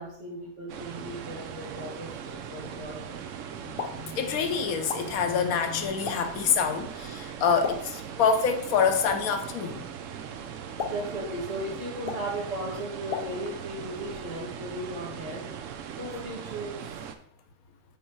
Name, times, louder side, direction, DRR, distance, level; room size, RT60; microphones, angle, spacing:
voice 1, 0.0-3.2 8.1-8.2 10.9-15.5 16.0-17.1, right 1 dB, 55° right, 1.9 m, -36 dB
sound 1, 0.7-17.2, right 8 dB, 70° right, 0.9 m, -40 dB
Explosion, 3.5-13.8, left 6 dB, 50° left, 0.8 m, -41 dB
voice 2, 3.6-9.9, left 6 dB, 90° left, 1.2 m, -26 dB
5.5 x 4.3 x 4.5 m
omnidirectional pair, 1.4 m